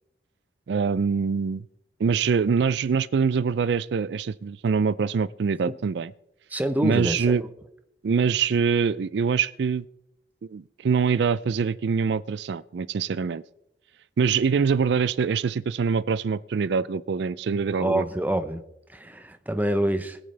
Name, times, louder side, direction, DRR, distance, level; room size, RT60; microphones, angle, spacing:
voice 1, 0.7-1.7 2.0-6.1 6.8-7.4 8.0-9.9 10.4-13.4 14.2-18.0, right 5 dB, 65° right, 18 dB, 0.4 m, -24 dB
voice 2, 6.5-7.5 17.8-18.6 18.9-20.2, right 1 dB, 10° right, 9 dB, 0.7 m, -26 dB
21.5 x 8.9 x 3.3 m, 0.80 s
head